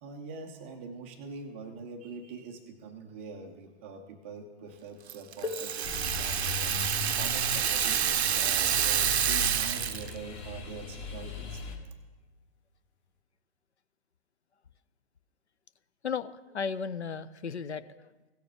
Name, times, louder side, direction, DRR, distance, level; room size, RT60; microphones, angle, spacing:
voice 1, 0.0-11.6, right 4 dB, 15° right, 4 dB, 0.3 m, -44 dB
Rattle (instrument), 5.1-10.2, right 9 dB, 75° right, 0.5 m, -28 dB
sound 1, 5.4-10.9 11.9-12.0 12.8-13.1, left 3 dB, 55° left, 1.3 m, -46 dB
sound 2, 5.8-11.8, left 5 dB, 25° left, 1.3 m, -38 dB
voice 2, 16.0-18.1, left 6 dB, 90° left, 15 dB, 0.5 m, -35 dB
16.5 x 6.8 x 3.3 m, 1.2 s
figure-of-eight pair, 120°, 32 cm